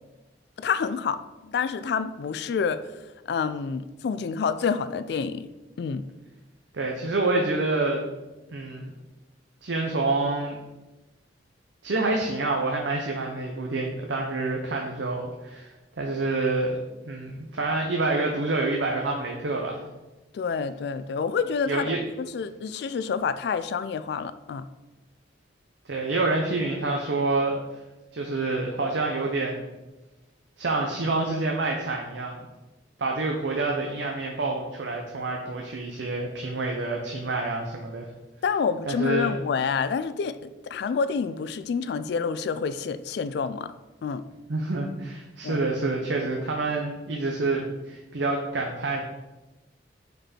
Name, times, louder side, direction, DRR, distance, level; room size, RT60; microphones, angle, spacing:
voice 1, 0.6-2.9 3.3-5.5 5.8-6.0 20.3-24.7 38.4-40.4 40.6-43.7 44.0-44.2 45.4-45.6, left 6 dB, 60° left, 13 dB, 0.3 m, -28 dB
voice 2, 6.7-8.0 8.5-8.9 9.6-10.6 11.8-15.7 16.0-16.8 17.0-19.8 21.7-22.0 25.9-27.5 28.1-29.7 30.6-32.3 33.0-38.1 38.9-39.3 44.5-49.0, right 2 dB, 80° right, 0 dB, 0.7 m, -27 dB
5.2 x 4.5 x 4.3 m, 1.1 s
head